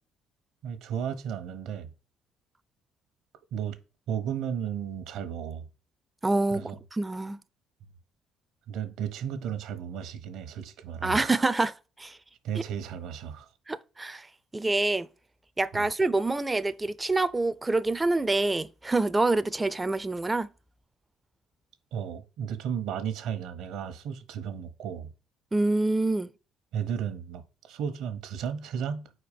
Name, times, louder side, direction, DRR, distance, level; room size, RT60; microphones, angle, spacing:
voice 1, 0.6-1.9 3.5-3.8 4.1-5.7 6.5-6.8 8.7-11.4 12.4-13.5 15.7-15.9 21.9-25.1 26.7-29.1, right 8 dB, 75° right, 1.0 m, -34 dB
voice 2, 6.2-6.6 6.9-7.4 11.0-12.2 13.7-14.3 14.5-15.1 15.6-20.5 25.5-26.3, right 2 dB, 15° right, 0.4 m, -26 dB
4.7 x 4.3 x 4.9 m
cardioid pair, 105°, 0 cm